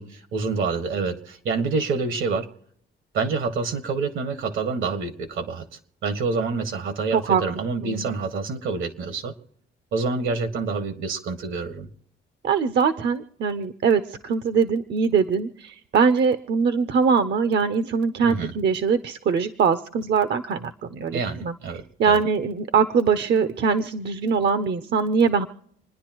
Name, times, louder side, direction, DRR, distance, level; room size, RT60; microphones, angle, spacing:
voice 1, 0.0-2.5 3.1-5.6 6.0-9.3 9.9-11.9 18.2-18.5 21.1-22.2, right 4 dB, 80° right, 9 dB, 1.8 m, -27 dB
voice 2, 7.1-7.4 7.8-8.1 12.4-21.5 22.0-25.5, right 6 dB, 60° right, 11 dB, 0.8 m, -22 dB
28.0 x 10.5 x 3.0 m, 0.69 s
cardioid pair, 90°, 20 cm